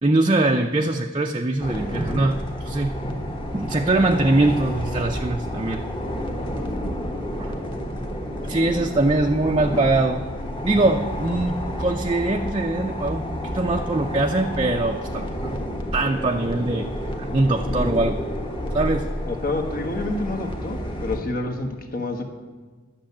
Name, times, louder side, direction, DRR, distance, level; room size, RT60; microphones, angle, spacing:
voice 1, 0.0-2.9 3.5-5.8 7.4-7.6 8.5-10.2 10.6-15.5 15.9-16.9 17.2-18.2 18.7-19.1, right 2 dB, 25° right, 3 dB, 0.5 m, -22 dB
sound 1, 1.6-21.2, equal, 25° left, 1.4 m, -30 dB
voice 2, 19.2-22.2, left 2 dB, 50° left, 5 dB, 1.4 m, -28 dB
11.5 x 6.9 x 8.5 m, 1.5 s
head